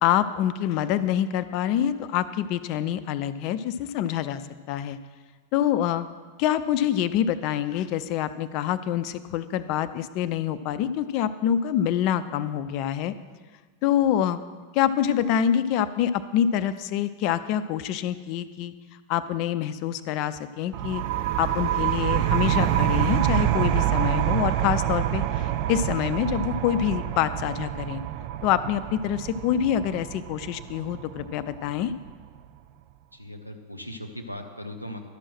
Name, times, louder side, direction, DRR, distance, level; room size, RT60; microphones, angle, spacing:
voice 1, 0.0-4.4 4.7-5.0 5.5-6.1 6.4-13.1 13.8-14.4 14.7-18.7 19.1-21.0 21.4-28.0 28.4-31.9, left 10 dB, 45° left, 13 dB, 0.5 m, -26 dB
sound 1, 20.7-32.1, right 12 dB, 45° right, 0.5 m, -26 dB
voice 2, 33.1-35.0, left 1 dB, 90° right, 4 dB, 0.8 m, -38 dB
12.0 x 6.2 x 6.1 m, 1.5 s
figure-of-eight pair, 90°, 0 cm